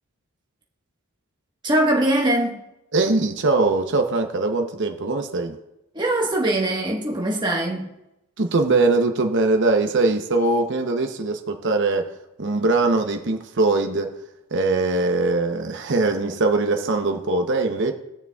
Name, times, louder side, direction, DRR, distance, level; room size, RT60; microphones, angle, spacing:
voice 1, 1.6-2.6 5.9-7.9, right 1 dB, 20° right, 1.3 m, -22 dB
voice 2, 2.9-5.6 8.4-12.1 12.4-14.2 14.5-17.9, right 3 dB, 55° right, 0.8 m, -21 dB
20.0 x 6.8 x 2.3 m
head